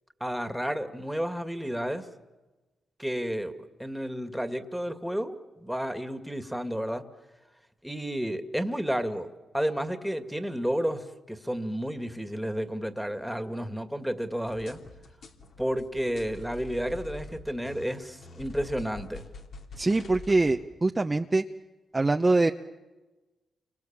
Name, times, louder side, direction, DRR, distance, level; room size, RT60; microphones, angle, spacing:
voice 1, 0.2-2.0 3.0-7.0 7.8-9.3 9.5-14.8 15.6-19.2, equal, ahead, 8 dB, 2.0 m, -31 dB
sound 1, 14.5-20.6, left 2 dB, 70° left, 2.9 m, -45 dB
voice 2, 19.8-21.4 21.9-22.5, right 2 dB, 25° right, 5 dB, 0.9 m, -23 dB
29.5 x 25.0 x 7.4 m, 1.2 s
cardioid pair, 70°, 0 cm